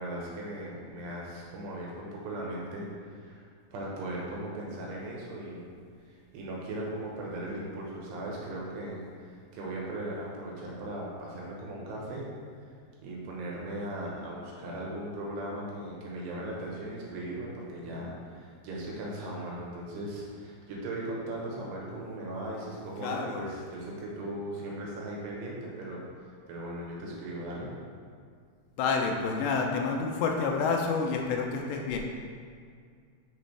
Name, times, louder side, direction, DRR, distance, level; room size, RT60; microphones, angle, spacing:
voice 1, 0.0-5.7 6.0-12.3 13.0-27.7, right 1 dB, 75° right, -3 dB, 3.3 m, -38 dB
voice 2, 23.0-23.5 28.8-32.0, left 4 dB, 90° left, 1 dB, 2.9 m, -29 dB
7.9 x 6.3 x 3.3 m, 2.1 s
omnidirectional pair, 5.1 m